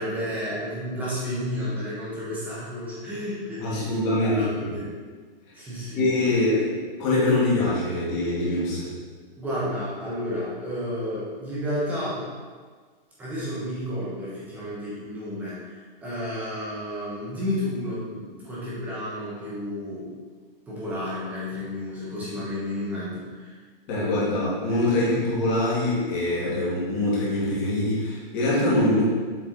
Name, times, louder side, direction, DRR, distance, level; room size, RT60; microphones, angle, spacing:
voice 1, 0.0-3.9 4.2-4.9 5.5-6.1 6.5-6.6 9.4-12.2 13.2-20.1 20.7-23.6, equal, 5° right, -9 dB, 1.2 m, -31 dB
voice 2, 3.6-4.8 6.0-6.7 7.0-8.9 23.9-29.0, left 2 dB, 20° left, -7 dB, 1.9 m, -24 dB
7.4 x 5.0 x 4.0 m, 1.5 s
hypercardioid pair, 175°, 29 cm